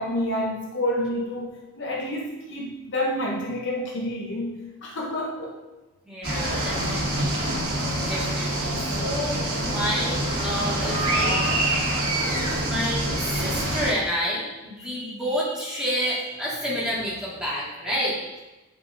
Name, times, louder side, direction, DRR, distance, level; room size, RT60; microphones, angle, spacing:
voice 1, 0.0-4.5 4.8-5.6, left 1 dB, 55° left, -2 dB, 0.9 m, -28 dB
voice 2, 6.0-7.3 8.0-11.4 12.6-18.2, equal, 5° right, -8 dB, 1.7 m, -29 dB
sound 1, 6.2-13.9, right 1 dB, 75° right, 2.3 m, -25 dB
8.8 x 5.4 x 2.6 m, 1.1 s
head